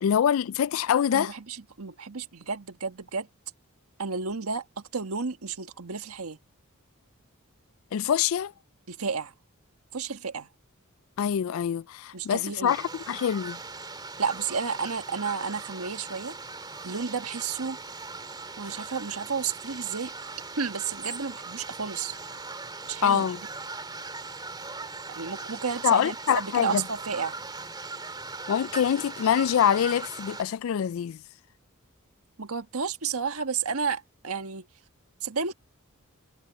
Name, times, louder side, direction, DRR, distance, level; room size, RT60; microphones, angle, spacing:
voice 1, 0.0-1.3 7.9-8.5 11.2-13.6 23.0-23.4 25.8-26.8 28.5-31.2, left 8 dB, 65° left, 0.3 m, -25 dB
voice 2, 1.1-3.3 4.0-6.4 8.9-9.3 9.9-10.5 12.1-12.7 14.2-16.4 16.8-17.8 18.6-20.1 20.6-22.2 22.9-23.3 25.2-27.4 32.4-34.7 35.2-35.5, right 5 dB, 85° right, 1.4 m, -32 dB
sound 1, 12.7-30.4, right 3 dB, 20° right, 2.9 m, -39 dB
head